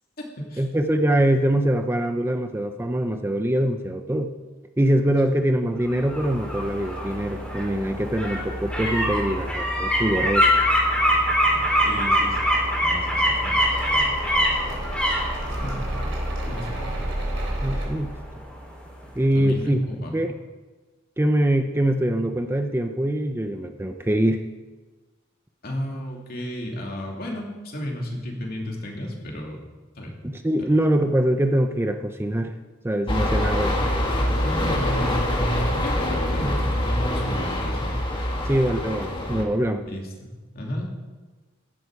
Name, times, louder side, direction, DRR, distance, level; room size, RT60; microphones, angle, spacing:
voice 1, 0.6-4.3 4.8-10.5 17.6-18.1 19.2-19.9 20.1-20.3 21.2-24.4 30.2-32.5 32.8-33.7 38.4-39.9, right 1 dB, 10° right, 7 dB, 0.6 m, -23 dB
sound 1, 5.8-18.7 19.0-19.1, equal, 5° left, 4.0 m, -24 dB
sound 2, 8.1-17.9, right 1 dB, 65° right, 3.5 m, -34 dB
voice 2, 11.8-12.4 12.8-13.9 15.6-16.1 16.5-16.9 19.3-20.2 25.6-29.6 30.0-30.1 30.6-30.7 34.4-36.0 36.3-37.9 39.9-41.1, equal, 50° left, 0 dB, 2.8 m, -33 dB
sound 3, 33.1-39.4, left 1 dB, 25° left, 1.9 m, -24 dB
15.0 x 11.5 x 4.8 m, 1.3 s
head